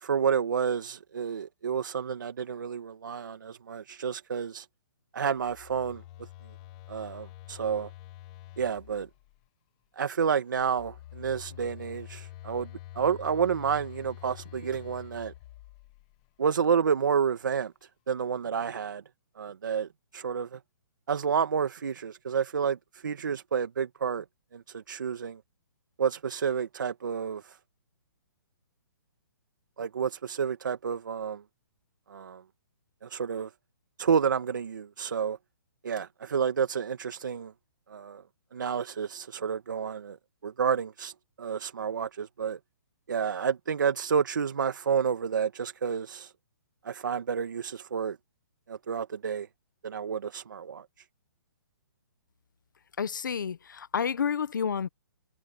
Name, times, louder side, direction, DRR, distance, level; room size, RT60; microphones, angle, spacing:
voice 1, 0.0-4.7 5.1-6.0 6.9-7.9 8.6-9.1 10.0-12.7 13.0-15.3 16.4-17.7 18.1-19.0 19.4-20.6 21.1-24.3 24.5-25.4 26.0-27.6 29.8-31.4 32.1-32.4 33.0-33.5 34.0-35.4 35.8-37.5 37.9-38.2 38.5-40.2 40.4-41.1 41.4-42.6 43.1-46.3 46.8-48.2 48.7-49.5 49.8-50.9, right 7 dB, 60° right, 1.8 m, -30 dB
Telephone, 5.3-9.4 10.5-16.2, left 14 dB, 15° left, 1.2 m, -47 dB
voice 2, 53.0-54.9, left 7 dB, 60° left, 1.1 m, -30 dB
hypercardioid pair, 180°, 12 cm